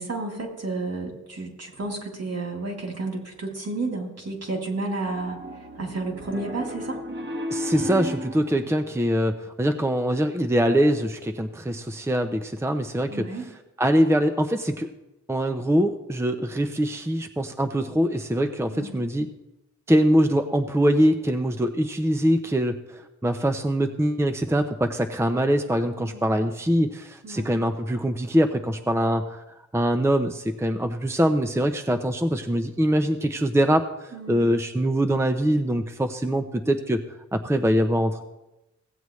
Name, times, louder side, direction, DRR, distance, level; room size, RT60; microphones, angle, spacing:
voice 1, 0.0-5.4 5.8-7.0 13.1-13.5 18.7-19.0 26.0-26.4 27.2-27.5 34.1-34.5, right 2 dB, 55° right, 0 dB, 3.1 m, -31 dB
Piano, 5.1-8.5, equal, 40° right, 1.4 m, -33 dB
voice 2, 7.5-13.2 13.8-14.9 15.3-19.3 19.9-22.7 23.2-29.4 29.7-33.8 34.3-37.0 37.3-38.2, equal, 10° right, 6 dB, 0.7 m, -23 dB
17.0 x 7.9 x 3.2 m, 0.98 s
cardioid pair, 55°, 31 cm